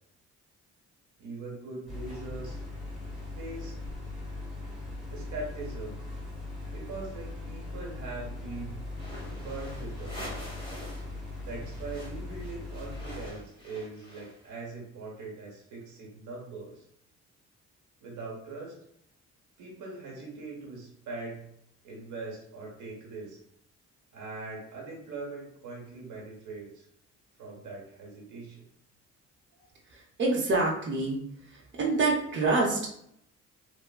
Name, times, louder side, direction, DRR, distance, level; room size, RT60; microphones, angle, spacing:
voice 1, 1.2-2.6 3.3-3.8 5.1-6.0 6.7-8.8 9.3-10.2 11.4-16.8 18.0-18.8 19.6-21.5 21.8-23.4 24.1-26.9 27.4-28.6, right 3 dB, 85° right, -2 dB, 1.1 m, -41 dB
sound 1, 1.9-13.3, left 2 dB, ahead, 1.3 m, -39 dB
sound 2, 9.0-11.1 11.4-14.5, equal, 15° left, 1.0 m, -45 dB
voice 2, 29.9-31.2 31.5-32.9, right 3 dB, 40° right, -2 dB, 0.8 m, -27 dB
3.5 x 2.0 x 2.3 m, 0.71 s
cardioid pair, 90°, 30 cm